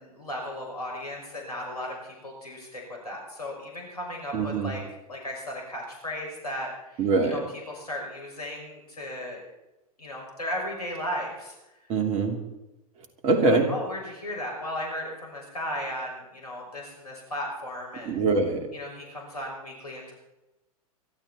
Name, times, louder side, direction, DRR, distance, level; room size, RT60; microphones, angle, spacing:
voice 1, 0.0-4.8 5.1-7.4 7.7-9.4 10.0-11.5 13.3-18.2 18.7-20.1, left 1 dB, 80° left, 0 dB, 6.0 m, -36 dB
voice 2, 4.3-4.7 7.0-7.4 11.9-12.4 13.2-13.7 18.0-18.7, right 3 dB, 35° right, 5 dB, 3.1 m, -23 dB
24.0 x 12.0 x 4.3 m, 0.96 s
figure-of-eight pair, 100°, 19 cm